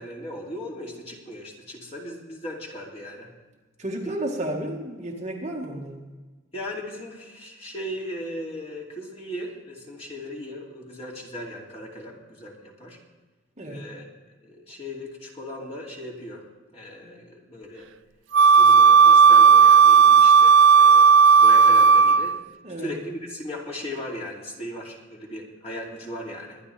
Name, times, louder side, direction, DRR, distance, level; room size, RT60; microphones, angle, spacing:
voice 1, 0.0-3.3 4.0-4.2 6.5-13.0 13.6-14.1 14.4-16.4 16.7-17.9 18.4-22.4 22.8-26.6, left 1 dB, 30° left, -2 dB, 2.7 m, -37 dB
voice 2, 3.8-6.0 13.6-13.9 22.6-22.9, right 1 dB, 35° right, -1 dB, 1.7 m, -32 dB
Wind instrument woodwind instrument, 18.3-22.4, right 6 dB, 65° right, 0.3 m, -13 dB
22.5 x 10.0 x 3.4 m, 1.3 s
head